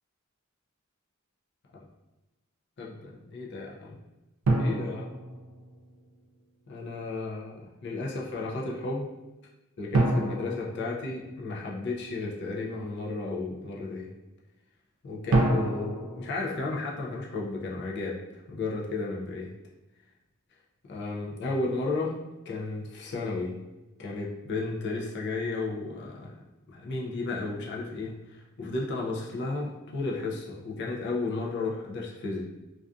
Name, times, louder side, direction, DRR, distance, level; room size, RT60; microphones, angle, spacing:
voice 1, 2.8-4.0 4.6-5.2 6.7-9.1 9.8-14.1 15.0-18.2 18.5-19.5 20.9-22.1 22.5-23.6 24.0-26.3 26.7-32.4, left 3 dB, 50° left, -3 dB, 0.4 m, -33 dB
sound 1, 4.5-6.1 9.9-11.8 15.3-17.6, right 2 dB, 75° right, 0.4 m, -28 dB
2.5 x 2.3 x 2.3 m, 1.1 s
head